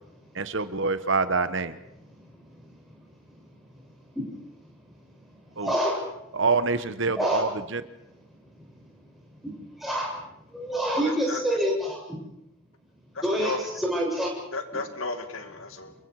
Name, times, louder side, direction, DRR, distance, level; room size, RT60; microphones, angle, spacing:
voice 1, 0.3-1.8 5.6-5.8 6.3-7.8, right 4 dB, 55° right, 12 dB, 1.1 m, -26 dB
voice 2, 5.6-6.0 7.2-7.5 9.8-10.1 10.5-12.0 13.2-14.3, equal, ahead, -3 dB, 7.1 m, -26 dB
voice 3, 11.0-11.6 13.1-13.6 14.5-15.9, left 3 dB, 70° left, 7 dB, 2.3 m, -34 dB
28.5 x 23.0 x 4.9 m, 0.83 s
head